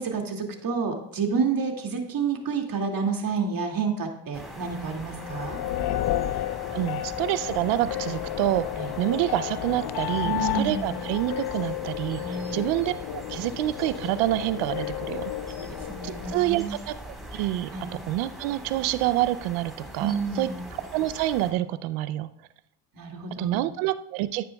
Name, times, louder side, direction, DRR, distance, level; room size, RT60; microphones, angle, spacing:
voice 1, 0.0-5.6 8.7-8.9 10.2-11.0 12.1-12.6 15.6-16.8 17.7-18.0 20.0-20.6 22.9-23.6, right 5 dB, 45° right, 2 dB, 2.4 m, -29 dB
sound 1, 4.3-21.5, equal, ahead, 4.2 m, -42 dB
sound 2, 5.0-16.4, left 13 dB, 55° left, 0.6 m, -32 dB
voice 2, 6.7-8.7 9.0-15.3 16.0-17.7 18.1-20.5 20.9-22.3 23.4-24.4, right 15 dB, 85° right, 15 dB, 0.7 m, -27 dB
13.5 x 9.6 x 2.3 m, 0.76 s
supercardioid pair, 60°, 47 cm